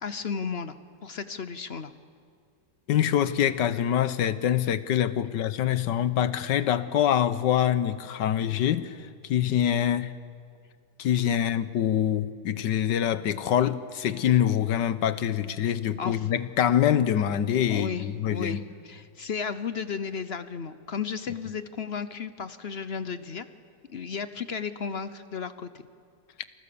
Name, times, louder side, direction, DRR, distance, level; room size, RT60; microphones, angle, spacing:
voice 1, 0.0-0.8 1.0-1.9 16.0-16.3 17.7-23.5 23.9-25.9, left 6 dB, 50° left, 0.8 m, -34 dB
voice 2, 2.9-9.0 9.2-10.1 11.0-18.6, left 10 dB, 75° left, 1.6 m, -25 dB
29.0 x 27.5 x 6.9 m
omnidirectional pair, 2.0 m